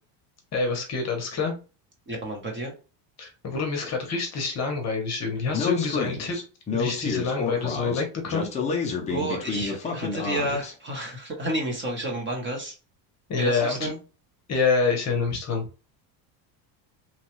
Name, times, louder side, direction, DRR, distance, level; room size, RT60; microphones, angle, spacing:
voice 1, 0.5-1.5 3.2-6.4 6.7-8.5 13.3-13.9 14.5-15.6, left 4 dB, 30° left, 3 dB, 0.8 m, -27 dB
voice 2, 2.1-2.7 9.1-12.7 13.4-14.0, right 1 dB, 25° right, 1 dB, 0.7 m, -30 dB
Speech, 5.5-10.7, left 5 dB, 15° left, 0.3 m, -29 dB
3.0 x 2.2 x 2.9 m, 0.33 s
cardioid pair, 140°, 50 cm